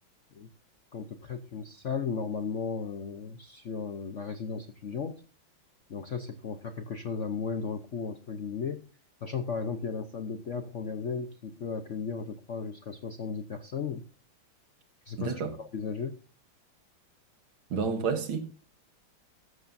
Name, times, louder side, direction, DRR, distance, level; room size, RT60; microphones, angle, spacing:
voice 1, 0.9-5.2 5.9-8.9 9.2-14.0 15.1-16.1, left 5 dB, 55° left, 0.8 m, -35 dB
voice 2, 15.2-15.5 17.7-18.4, right 5 dB, 75° right, 2.2 m, -29 dB
14.5 x 13.0 x 2.6 m
omnidirectional pair, 2.3 m